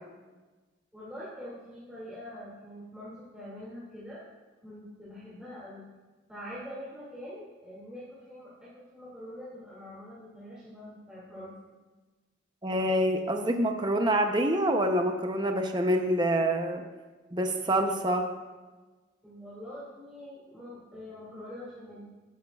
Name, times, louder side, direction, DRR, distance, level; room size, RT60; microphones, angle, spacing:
voice 1, 0.9-4.3 4.6-5.8 6.3-11.5 19.2-22.1, equal, 5° right, -10 dB, 2.1 m, -44 dB
voice 2, 12.6-16.8 17.3-18.3, right 1 dB, 20° right, 4 dB, 0.6 m, -26 dB
12.5 x 9.3 x 2.3 m, 1.3 s
head